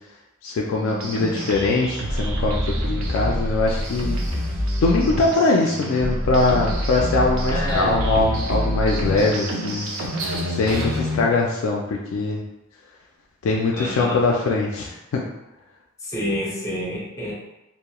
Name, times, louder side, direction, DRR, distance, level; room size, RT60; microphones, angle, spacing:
voice 1, 0.4-4.2 4.8-9.8 10.5-12.4 13.4-15.2, left 3 dB, 70° left, -1 dB, 0.3 m, -22 dB
sound 1, 0.8-11.2, right 1 dB, 70° right, 0.5 m, -30 dB
sound 2, 2.1-5.3 6.0-9.3, equal, 30° right, 1.3 m, -26 dB
voice 2, 7.5-8.1 13.7-14.2 16.1-17.3, left 1 dB, 15° left, -4 dB, 0.5 m, -28 dB
2.9 x 2.0 x 2.2 m, 0.96 s
head